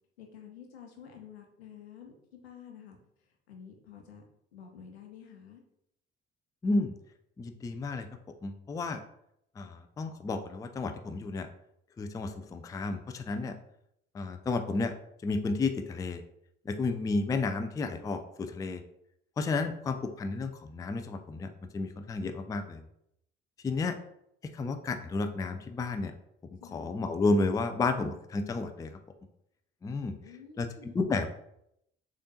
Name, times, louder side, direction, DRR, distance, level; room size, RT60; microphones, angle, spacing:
voice 1, 0.2-3.0 3.5-4.2 4.5-5.6 26.6-26.9 30.2-31.1, left 7 dB, 80° left, 3 dB, 0.7 m, -50 dB
voice 2, 7.4-8.1 8.4-9.0 9.6-11.5 12.0-13.6 14.1-14.9 15.2-16.2 16.7-18.8 19.4-21.5 21.7-22.8 23.6-24.0 24.5-26.1 26.6-28.9 29.8-30.1 30.6-30.7 30.9-31.3, left 3 dB, 10° left, 7 dB, 0.3 m, -31 dB
6.6 x 2.5 x 2.7 m, 0.77 s
figure-of-eight pair, 50°, 31 cm